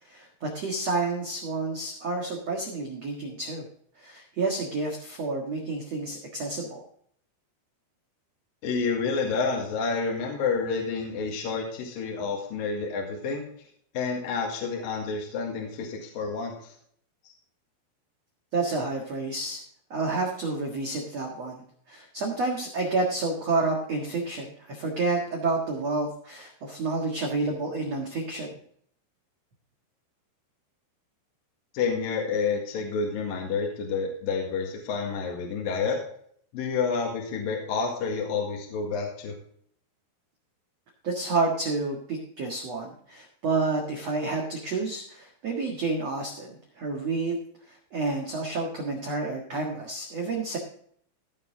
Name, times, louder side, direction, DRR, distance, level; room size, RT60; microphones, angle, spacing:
voice 1, 0.1-3.6 4.0-6.8 18.5-19.6 19.9-28.5 41.0-47.3 47.9-50.6, right 3 dB, 80° right, 0 dB, 1.4 m, -29 dB
voice 2, 8.6-13.5 13.9-16.7 31.7-36.0 36.5-39.3, left 5 dB, 55° left, 0 dB, 3.0 m, -29 dB
16.5 x 6.7 x 3.7 m, 0.63 s
omnidirectional pair, 5.8 m